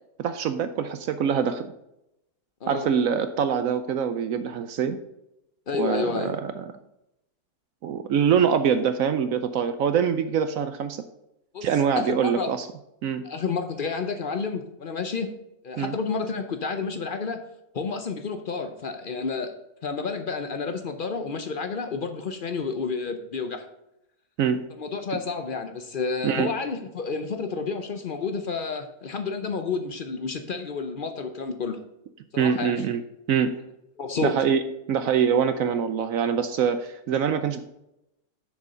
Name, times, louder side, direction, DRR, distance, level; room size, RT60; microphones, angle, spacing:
voice 1, 0.2-1.7 2.7-5.0 5.7-6.6 7.8-11.0 11.6-12.7 13.0-13.2 15.8-15.9 24.4-24.6 26.2-26.5 32.4-33.0 33.3-33.5 34.2-34.6 34.9-37.6, right 7 dB, 70° right, 10 dB, 0.9 m, -24 dB
voice 2, 5.7-6.3 11.5-11.7 12.0-12.5 13.2-15.3 15.6-17.4 17.7-19.5 19.8-23.6 24.8-31.8 32.3-32.8 34.0-34.4, left 4 dB, 55° left, 8 dB, 0.5 m, -30 dB
7.0 x 6.5 x 5.6 m, 0.85 s
omnidirectional pair, 1.7 m